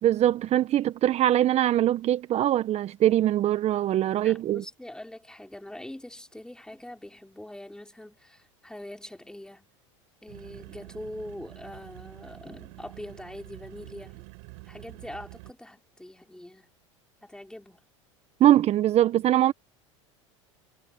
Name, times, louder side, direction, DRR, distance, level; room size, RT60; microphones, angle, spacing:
voice 1, 0.0-4.6 18.4-19.5, right 12 dB, 40° right, 1.3 m, -22 dB
voice 2, 4.2-9.7 10.2-14.3 14.7-16.7 17.2-17.8, left 1 dB, 5° left, 4.8 m, -43 dB
sound 1, 10.3-15.5, right 32 dB, 65° right, 7.1 m, -47 dB
hypercardioid pair, 85°, 16 cm